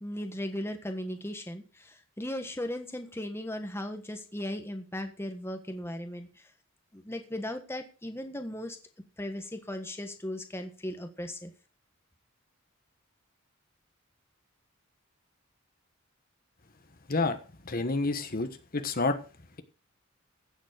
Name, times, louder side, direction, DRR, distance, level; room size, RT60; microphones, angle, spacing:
voice 1, 0.0-6.3 6.9-8.8 9.2-11.5, left 1 dB, 10° left, 6 dB, 1.4 m, -37 dB
voice 2, 17.6-19.2, left 3 dB, 45° left, 8 dB, 1.3 m, -29 dB
15.5 x 7.3 x 5.1 m, 0.35 s
head